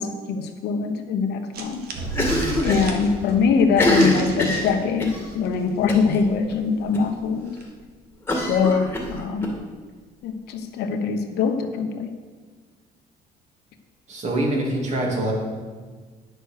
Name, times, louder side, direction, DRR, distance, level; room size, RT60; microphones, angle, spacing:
voice 1, 0.0-1.8 2.6-7.6 8.4-9.6 10.2-12.1, left 5 dB, 75° left, 6 dB, 1.1 m, -23 dB
sound 1, 1.5-4.8 5.1-7.6, right 4 dB, 65° right, 1.5 m, -39 dB
sound 2, 1.8-6.1, right 2 dB, 90° right, 1.9 m, -35 dB
Cough, 2.1-2.9 3.2-3.3 3.7-5.2 5.9-6.2 6.5-6.6 6.9-7.0 8.3-9.5, left 1 dB, 15° left, 2.0 m, -23 dB
voice 2, 14.1-15.3, right 1 dB, 45° right, -1 dB, 2.9 m, -24 dB
9.8 x 6.5 x 6.7 m, 1.5 s
cardioid pair, 110°, 17 cm